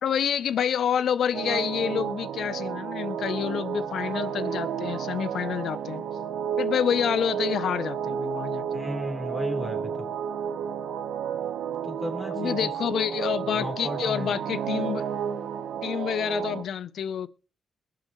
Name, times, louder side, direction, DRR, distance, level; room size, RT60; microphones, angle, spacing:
voice 1, 0.0-6.0 6.6-8.6 12.3-15.1 15.8-17.3, left 8 dB, 75° left, 0.6 m, -28 dB
sound 1, 1.3-16.6, right 8 dB, 80° right, 1.0 m, -31 dB
voice 2, 8.7-10.1 11.8-12.7 13.4-14.3, equal, 15° left, 3.8 m, -34 dB
21.5 x 7.7 x 3.1 m
cardioid pair, 65°, 0 cm